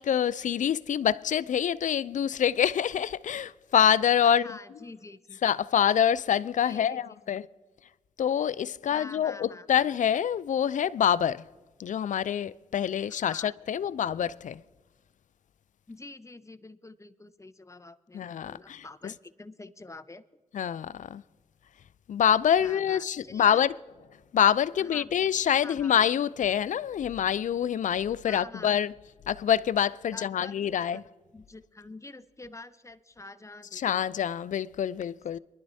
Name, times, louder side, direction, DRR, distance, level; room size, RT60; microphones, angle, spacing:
voice 1, 0.0-4.6 5.4-7.5 8.2-11.4 11.8-14.6 18.1-18.8 20.5-21.2 22.1-23.7 24.3-28.9 29.3-31.0 33.7-35.4, left 9 dB, 60° left, 0.5 m, -26 dB
voice 2, 4.2-5.4 6.7-7.4 8.9-9.7 13.1-13.5 15.9-20.4 22.6-23.6 24.8-25.1 25.6-26.0 28.2-28.8 30.1-30.5 30.9-31.0 31.3-33.9, left 2 dB, 20° left, 0.9 m, -47 dB
23.5 x 11.5 x 2.7 m
supercardioid pair, 40°, 14 cm